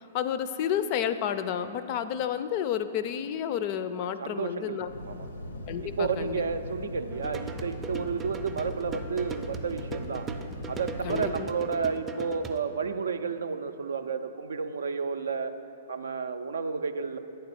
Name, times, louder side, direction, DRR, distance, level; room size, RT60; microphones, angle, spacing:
voice 1, 0.1-4.9 5.7-6.4 11.0-11.5, left 9 dB, 45° left, 12 dB, 0.4 m, -30 dB
voice 2, 4.2-5.3 5.8-10.3 10.7-15.5 15.9-17.2, right 5 dB, 75° right, 9 dB, 0.4 m, -31 dB
sound 1, 4.8-11.4, left 1 dB, 90° left, 0.6 m, -39 dB
sound 2, 7.1-12.6, right 4 dB, 15° right, 0.4 m, -39 dB
8.9 x 3.9 x 6.8 m, 2.9 s
hypercardioid pair, 120°, 0 cm